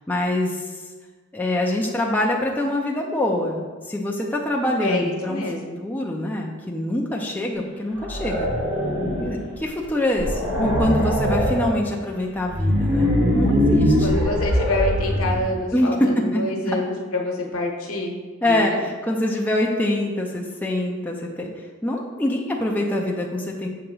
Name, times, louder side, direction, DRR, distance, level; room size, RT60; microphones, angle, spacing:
voice 1, 0.1-0.7 1.3-5.4 5.8-8.5 9.2-14.2 15.7-16.8 18.4-21.5 21.8-23.7, left 1 dB, 10° left, -2 dB, 0.5 m, -24 dB
voice 2, 4.8-5.8 14.0-18.2 18.4-18.8, left 2 dB, 85° left, 1 dB, 1.0 m, -26 dB
sound 1, 8.0-9.5 9.8-9.9 10.2-11.7 12.4-15.5, equal, 70° right, 1.4 m, -22 dB
6.7 x 2.9 x 5.3 m, 1.4 s
head